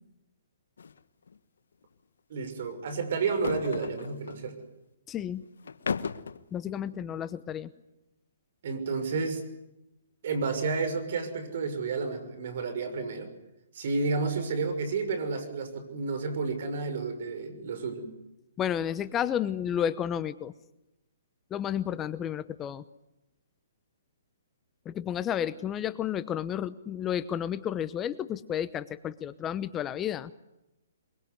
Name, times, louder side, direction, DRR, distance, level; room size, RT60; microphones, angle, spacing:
sound 1, 0.8-1.0 1.3-1.4 3.2-4.4 5.6-6.4, left 6 dB, 80° left, 1.3 m, -35 dB
voice 1, 2.3-4.6 8.6-9.4 10.2-13.3 13.7-18.0, right 4 dB, 55° right, 10 dB, 6.3 m, -31 dB
voice 2, 5.1-5.4 6.5-7.7 18.6-20.5 21.5-22.8 24.9-30.3, left 9 dB, 20° left, 15 dB, 0.9 m, -31 dB
23.5 x 22.5 x 9.7 m, 0.91 s
hypercardioid pair, 145°, 0 cm